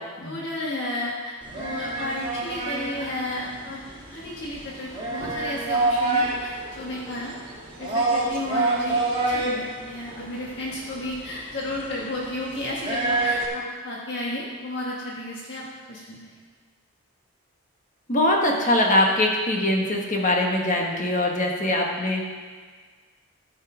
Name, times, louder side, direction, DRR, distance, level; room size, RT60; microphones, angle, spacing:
voice 1, 0.2-3.8 4.1-7.3 7.8-16.3, left 1 dB, 55° left, -5 dB, 1.5 m, -33 dB
sound 1, 1.4-13.5, right 2 dB, 25° right, 1.5 m, -28 dB
voice 2, 18.1-22.2, left 1 dB, 35° left, 0 dB, 1.3 m, -22 dB
13.0 x 5.6 x 4.9 m, 1.5 s
head